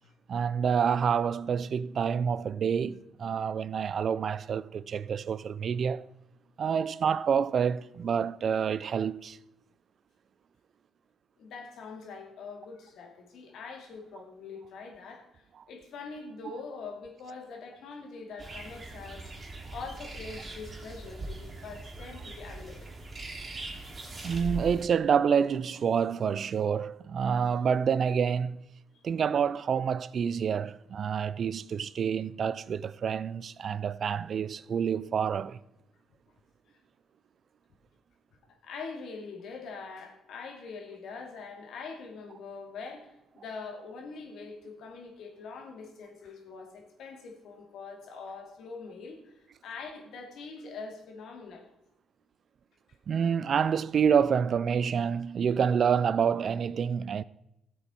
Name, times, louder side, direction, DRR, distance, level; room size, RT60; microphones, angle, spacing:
voice 1, 0.3-6.1 6.6-9.4 24.2-28.6 29.0-35.6 53.1-57.2, right 7 dB, 55° right, 0.4 m, -28 dB
voice 2, 11.4-19.3 19.7-22.9 36.7-36.8 38.6-51.7, left 4 dB, 75° left, 2.4 m, -43 dB
sound 1, 18.4-24.8, right 2 dB, 35° right, 3.0 m, -41 dB
14.5 x 8.1 x 4.4 m
cardioid pair, 90°, 0 cm